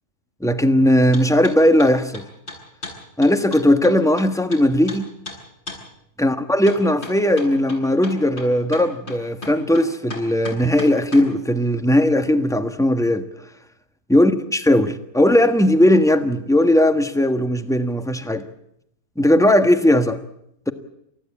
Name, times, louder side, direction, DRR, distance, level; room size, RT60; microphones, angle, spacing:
voice 1, 0.4-2.3 3.2-5.1 6.2-13.3 14.1-18.5 19.2-20.2, left 1 dB, ahead, 1.2 m, -18 dB
sound 1, 1.1-1.5 1.8-4.6 4.9-5.0 5.2-5.4 5.7-5.8 6.7-11.3, left 3 dB, 45° left, 8.5 m, -34 dB
29.0 x 15.0 x 8.6 m
omnidirectional pair, 1.6 m